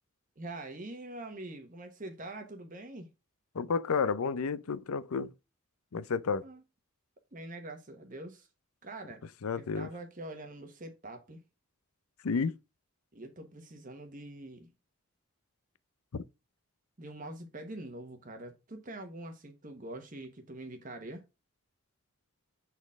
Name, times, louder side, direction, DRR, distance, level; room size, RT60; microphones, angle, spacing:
voice 1, 0.4-3.1 6.4-6.6 7.3-8.5 8.8-9.2 9.5-11.4 13.1-14.7 17.0-21.2, right 2 dB, 35° right, 1.1 m, -44 dB
voice 2, 3.5-5.3 5.9-6.5 9.4-9.9 12.2-12.5 16.1-16.2, left 5 dB, 80° left, 0.5 m, -31 dB
7.0 x 4.3 x 3.5 m
head